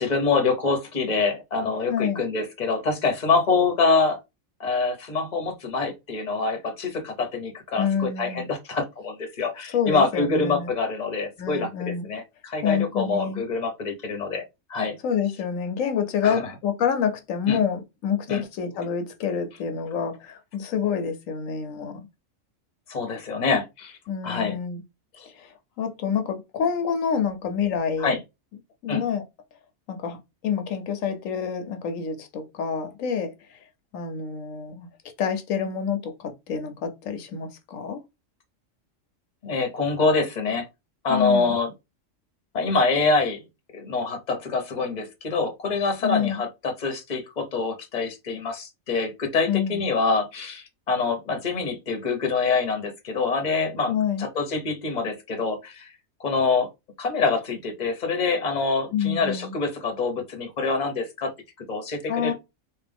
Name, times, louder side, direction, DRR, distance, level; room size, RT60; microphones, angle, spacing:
voice 1, 0.0-4.2 4.6-14.4 14.7-15.0 16.2-16.4 17.5-17.6 18.3-18.5 22.9-24.0 24.2-24.6 25.2-25.3 28.0-28.2 28.9-29.0 39.4-40.7 41.0-41.7 42.5-43.4 43.7-55.9 56.2-56.7 57.0-61.3 61.6-62.3, left 4 dB, 35° left, 1.0 m, -25 dB
voice 2, 1.9-2.2 7.8-8.5 9.7-10.7 11.4-12.1 12.6-13.4 15.0-22.1 24.1-24.8 25.3-28.2 28.8-29.2 29.9-30.2 30.4-33.6 33.9-34.9 35.2-38.0 41.1-41.6 46.0-46.4 49.5-49.8 53.9-54.3 58.9-59.6 62.1-62.3, left 7 dB, 80° left, 1.1 m, -27 dB
3.4 x 3.1 x 3.4 m
omnidirectional pair, 1.4 m